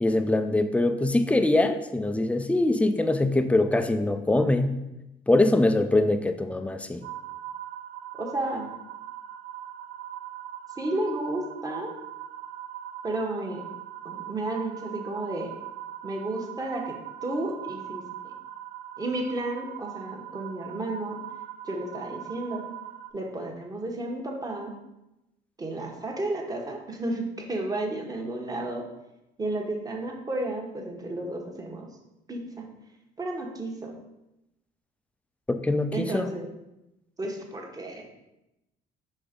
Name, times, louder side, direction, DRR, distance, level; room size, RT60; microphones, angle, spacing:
voice 1, 0.0-4.8 5.3-7.0 35.5-36.3, left 2 dB, 10° left, 8 dB, 0.5 m, -23 dB
sound 1, 7.0-23.1, right 11 dB, 60° right, 0.6 m, -41 dB
voice 2, 8.2-8.7 10.8-11.9 13.0-13.6 14.0-15.5 16.0-17.0 17.2-18.3 19.0-21.2 21.6-22.6 23.1-24.7 25.6-28.8 29.4-31.9 32.3-32.7 33.2-33.9 35.9-36.5 37.2-38.0, right 2 dB, 20° right, 1 dB, 1.1 m, -32 dB
5.5 x 3.5 x 5.1 m, 0.92 s
cardioid pair, 110°, 17 cm